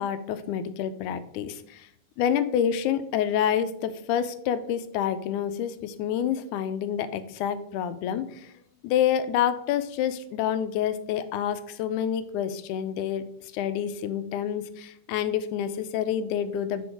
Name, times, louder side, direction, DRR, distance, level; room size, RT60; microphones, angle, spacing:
voice 1, 0.0-1.9 2.2-8.5 8.8-13.2 13.5-16.9, left 9 dB, 85° left, 12 dB, 2.0 m, -28 dB
6.2 x 4.3 x 4.6 m, 0.72 s
omnidirectional pair, 3.5 m